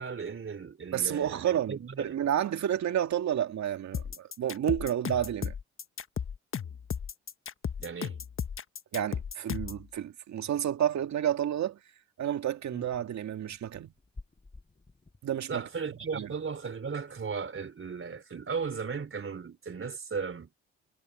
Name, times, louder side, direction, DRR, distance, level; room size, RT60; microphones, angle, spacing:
voice 1, 0.0-2.2 7.8-8.2 15.5-20.5, right 5 dB, 45° right, 3.9 m, -36 dB
voice 2, 0.9-5.5 8.9-11.8 12.2-13.9 15.2-15.6 16.1-16.3, right 10 dB, 65° right, 2.2 m, -30 dB
sound 1, 3.9-9.8, left 7 dB, 45° left, 1.2 m, -35 dB
sound 2, 12.7-15.2 16.5-16.6 16.7-16.8 17.0-17.4 17.8-18.1, left 3 dB, 25° left, 7.9 m, -51 dB
supercardioid pair, 55°, 30 cm